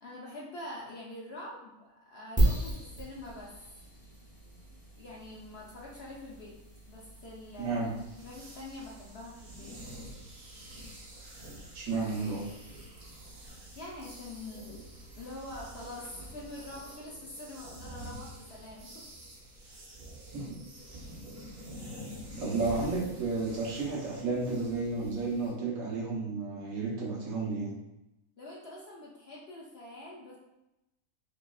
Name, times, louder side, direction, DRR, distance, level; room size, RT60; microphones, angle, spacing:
voice 1, 0.0-3.5 5.0-6.6 6.9-7.9 8.2-9.8 13.7-14.8 15.2-19.1 22.5-22.8 28.4-30.4, left 1 dB, 55° left, -3 dB, 0.8 m, -45 dB
sound 1, 2.4-17.1, right 1 dB, 5° right, 0.8 m, -38 dB
voice 2, 7.6-7.9 11.7-12.5 20.3-20.6 22.4-27.7, right 3 dB, 70° right, -4 dB, 1.3 m, -32 dB
sound 2, 8.0-25.5, equal, 50° right, 0.8 m, -47 dB
5.1 x 2.4 x 2.3 m, 0.93 s
omnidirectional pair, 1.5 m